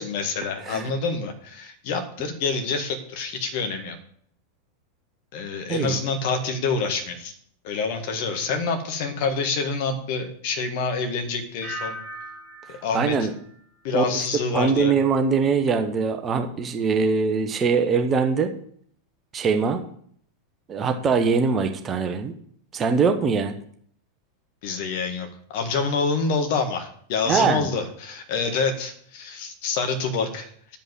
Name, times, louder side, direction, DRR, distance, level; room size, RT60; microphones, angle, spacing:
voice 1, 0.0-4.0 5.3-7.3 7.6-12.0 12.7-13.3 13.8-14.9 24.6-30.8, left 4 dB, 50° left, 5 dB, 1.8 m, -27 dB
sound 1, 11.6-14.5 14.8-15.3, equal, 15° left, 3.8 m, -40 dB
voice 2, 12.9-13.3 13.9-14.0 14.5-18.5 19.3-19.8 20.7-22.3 22.7-23.5 27.3-27.7, right 5 dB, 25° right, 5 dB, 1.1 m, -22 dB
9.9 x 5.3 x 7.6 m, 0.63 s
figure-of-eight pair, 90°, 0 cm